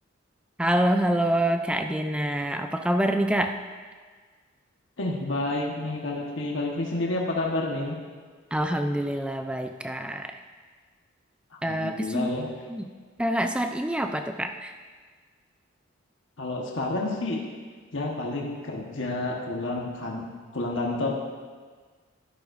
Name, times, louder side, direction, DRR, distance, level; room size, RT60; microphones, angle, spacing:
voice 1, 0.6-3.6 8.5-10.3 11.6-12.3 12.7-12.9 13.2-14.7, right 1 dB, 5° right, 6 dB, 0.4 m, -26 dB
voice 2, 5.0-8.0 11.5-12.5 16.4-17.4 17.9-20.3 20.5-21.1, left 2 dB, 65° left, -1 dB, 1.3 m, -29 dB
13.5 x 11.0 x 2.6 m, 1.5 s
head